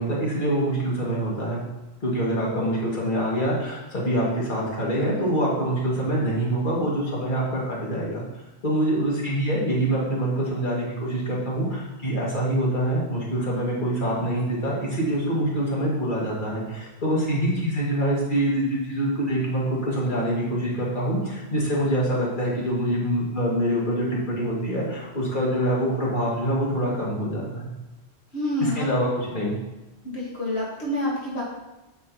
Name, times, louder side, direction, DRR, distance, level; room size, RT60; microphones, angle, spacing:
voice 1, 0.0-1.6 2.0-8.2 8.6-27.7 28.6-29.6, right 1 dB, 50° left, -4 dB, 2.1 m, -25 dB
voice 2, 28.3-28.9 30.0-31.4, left 1 dB, 80° left, -4 dB, 1.7 m, -27 dB
8.6 x 6.7 x 2.8 m, 1.0 s
omnidirectional pair, 1.1 m